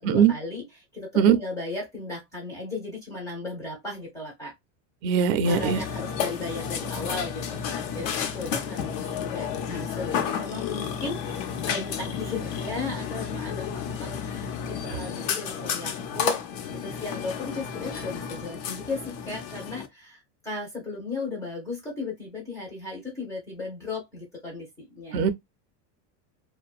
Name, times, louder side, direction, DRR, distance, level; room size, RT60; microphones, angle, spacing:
voice 1, 0.0-4.5 5.4-13.7 14.0-16.5 16.8-25.3, left 3 dB, 5° left, 0.4 m, -36 dB
voice 2, 5.0-5.8 25.1-25.3, right 7 dB, 60° right, 0.5 m, -20 dB
Burping eructation, 5.4-19.9, left 7 dB, 75° left, 0.7 m, -32 dB
2.5 x 2.2 x 2.3 m
supercardioid pair, 165°, 50 cm